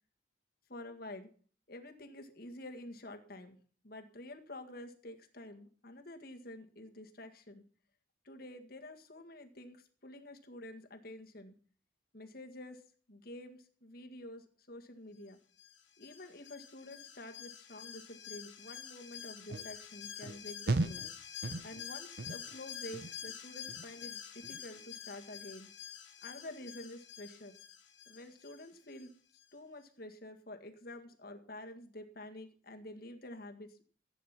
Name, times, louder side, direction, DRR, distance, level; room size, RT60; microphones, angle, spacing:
voice 1, 0.7-1.3 1.7-3.6 3.8-7.6 8.2-11.5 12.1-12.8 13.1-15.4 16.0-21.1 21.6-25.7 26.2-27.6 28.1-29.1 29.5-33.8, left 1 dB, 50° left, 5 dB, 1.9 m, -49 dB
Alarm, 15.6-29.1 29.4-29.5, left 9 dB, 85° left, 2.6 m, -48 dB
sound 1, 19.5-19.7 20.2-20.4 20.7-21.1 21.4-21.9 22.2-22.6 22.9-23.3 23.7-24.1 24.4-24.6, right 2 dB, 55° right, 0.7 m, -36 dB
15.0 x 9.3 x 5.9 m, 0.43 s
head